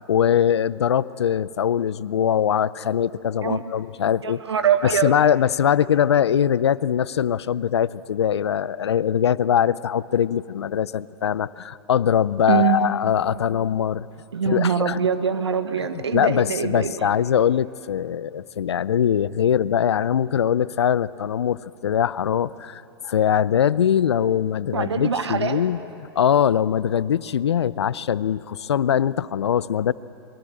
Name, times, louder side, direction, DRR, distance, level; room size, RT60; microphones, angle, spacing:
voice 1, 0.1-4.4 4.8-14.1 14.5-15.0 15.9-29.9, left 9 dB, 80° left, 19 dB, 0.5 m, -22 dB
voice 2, 4.2-5.1 12.5-12.9 14.3-17.1 24.7-25.6, right 7 dB, 85° right, 9 dB, 1.5 m, -23 dB
22.5 x 22.5 x 7.7 m, 2.6 s
hypercardioid pair, 105°, 14 cm